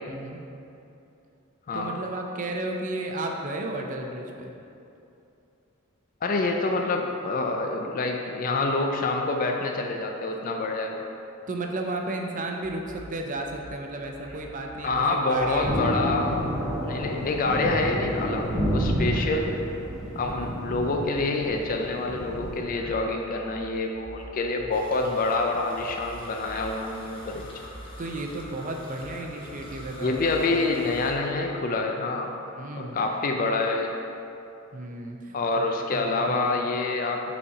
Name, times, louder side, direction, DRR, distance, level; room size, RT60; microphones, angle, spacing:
voice 1, 0.1-0.4 1.7-4.5 11.5-16.2 20.2-20.6 28.0-30.2 30.5-30.6 32.5-33.0 34.7-35.6 35.9-36.6, right 2 dB, 40° right, 2 dB, 0.6 m, -34 dB
voice 2, 1.7-2.0 6.2-11.0 14.8-16.4 16.8-19.6 20.1-27.5 30.0-32.3 32.8-34.0 35.3-37.4, left 3 dB, 40° left, 2 dB, 0.4 m, -27 dB
sound 1, 12.6-31.3, right 1 dB, 75° right, 1.0 m, -47 dB
Thunder, 15.6-22.6, equal, 5° right, 0.9 m, -30 dB
sound 2, 24.7-31.1, left 1 dB, 25° left, 0.9 m, -46 dB
5.6 x 4.2 x 4.7 m, 2.7 s
head